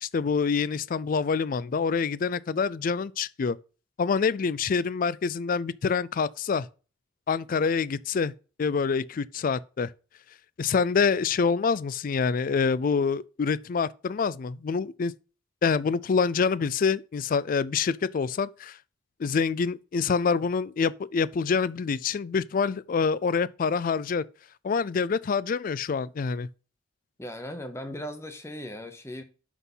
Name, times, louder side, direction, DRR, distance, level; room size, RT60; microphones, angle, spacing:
voice 1, 0.0-3.6 4.0-6.7 7.3-8.3 8.6-9.9 10.6-15.1 15.6-18.8 19.2-24.2 24.6-26.5, left 5 dB, 45° left, 0.3 m, -26 dB
voice 2, 27.2-29.2, left 1 dB, 15° left, 0.9 m, -38 dB
6.0 x 5.6 x 5.5 m
head